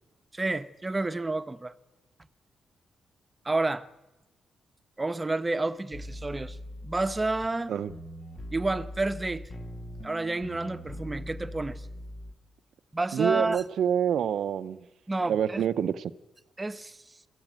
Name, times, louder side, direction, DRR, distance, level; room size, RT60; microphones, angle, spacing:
voice 1, 0.3-1.7 3.4-3.9 5.0-6.6 6.8-7.7 8.5-9.5 10.0-11.9 12.9-13.6 15.1-15.7 16.6-17.1, right 2 dB, 25° right, 1.1 m, -30 dB
sound 1, 5.9-12.3, left 1 dB, 40° left, 2.2 m, -41 dB
voice 2, 13.1-14.9 15.3-16.1, right 9 dB, 75° right, 0.7 m, -27 dB
22.5 x 14.5 x 9.1 m
supercardioid pair, 60°, 0 cm